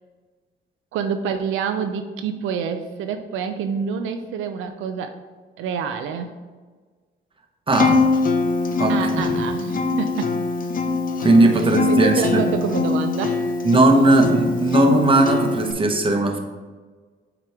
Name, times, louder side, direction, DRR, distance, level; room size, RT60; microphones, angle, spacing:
voice 1, 0.9-5.2 5.6-6.3 8.9-10.3 11.5-13.5, right 7 dB, 85° right, 7 dB, 0.5 m, -27 dB
Acoustic guitar, 7.7-15.7, left 4 dB, 45° left, 0.6 m, -22 dB
voice 2, 7.7-8.0 8.8-9.4 11.2-12.4 13.6-16.4, right 2 dB, 25° right, 3 dB, 0.9 m, -18 dB
7.5 x 3.0 x 4.6 m, 1.4 s
cardioid pair, 90°, 20 cm